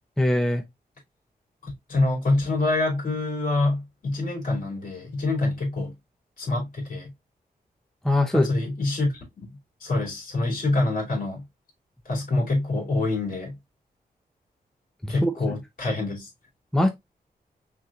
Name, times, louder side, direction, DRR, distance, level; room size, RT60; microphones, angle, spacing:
voice 1, 0.2-0.6 8.0-8.5 15.0-15.5 16.7-16.9, left 1 dB, 5° left, 0.6 m, -22 dB
voice 2, 1.6-5.9 6.4-7.1 8.3-11.4 12.0-13.5 15.1-16.3, left 2 dB, 60° left, 2.7 m, -26 dB
5.9 x 3.1 x 2.4 m
wide cardioid pair, 95°, 16 cm